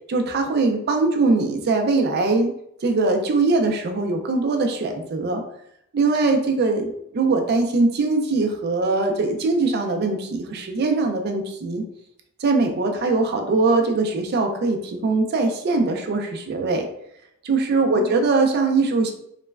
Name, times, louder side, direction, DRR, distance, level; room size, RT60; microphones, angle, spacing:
voice 1, 0.1-2.5 2.8-5.4 5.9-11.9 12.4-16.9 17.4-19.1, right 3 dB, 50° right, 4 dB, 0.4 m, -21 dB
3.0 x 2.1 x 2.3 m, 0.75 s
head